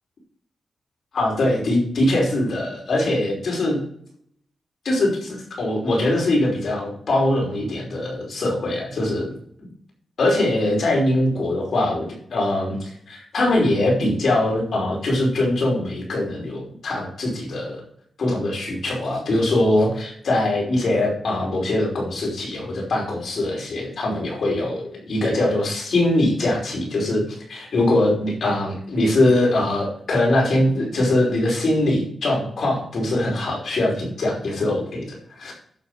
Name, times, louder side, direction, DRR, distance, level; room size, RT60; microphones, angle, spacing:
voice 1, 1.1-3.8 4.8-9.3 10.2-17.8 18.2-27.2 27.5-35.5, left 1 dB, 75° left, -1 dB, 5.3 m, -22 dB
11.5 x 7.3 x 5.0 m, 0.64 s
cardioid pair, 80°, 0 cm